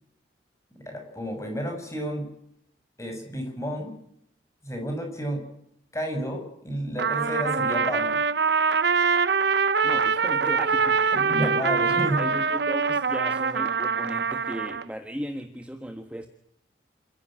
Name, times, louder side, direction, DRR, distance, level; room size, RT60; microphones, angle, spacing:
voice 1, 0.8-2.3 3.0-4.0 4.6-5.4 5.9-8.2 11.1-12.3, equal, 15° left, 4 dB, 6.7 m, -31 dB
Trumpet, 7.0-14.9, right 5 dB, 65° right, 0.8 m, -24 dB
voice 2, 9.8-16.3, equal, 5° right, 6 dB, 1.4 m, -36 dB
28.0 x 15.5 x 8.8 m, 0.73 s
head